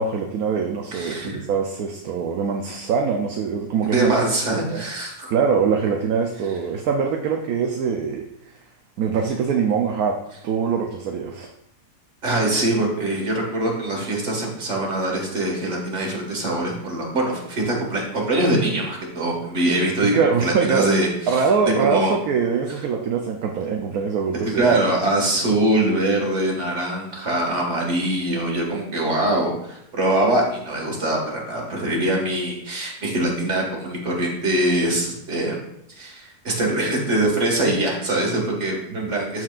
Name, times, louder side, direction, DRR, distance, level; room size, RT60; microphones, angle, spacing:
voice 1, 0.0-4.1 4.5-4.8 5.3-8.2 9.0-10.1 10.4-11.5 20.0-20.9 21.3-24.8 39.0-39.1, right 6 dB, 70° right, 2 dB, 1.1 m, -23 dB
voice 2, 0.9-1.4 3.8-5.3 12.2-20.1 20.4-21.4 21.8-22.1 24.4-35.6 36.0-39.4, right 1 dB, 45° right, -1 dB, 2.1 m, -23 dB
13.0 x 4.6 x 2.5 m, 0.77 s
omnidirectional pair, 1.7 m